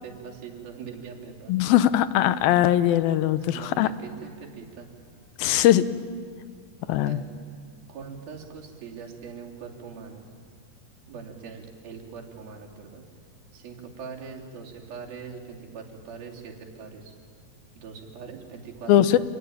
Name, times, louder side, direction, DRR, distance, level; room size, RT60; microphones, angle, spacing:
voice 1, 0.0-1.5 3.5-4.9 7.0-7.3 7.9-10.2 11.1-13.0 13.5-17.1 17.8-19.1, right 6 dB, 90° right, 0 dB, 4.7 m, -42 dB
voice 2, 1.5-3.9 5.4-5.8 6.9-7.2 18.9-19.2, left 12 dB, 85° left, 13 dB, 2.7 m, -20 dB
27.5 x 21.0 x 9.3 m, 2.1 s
omnidirectional pair, 4.1 m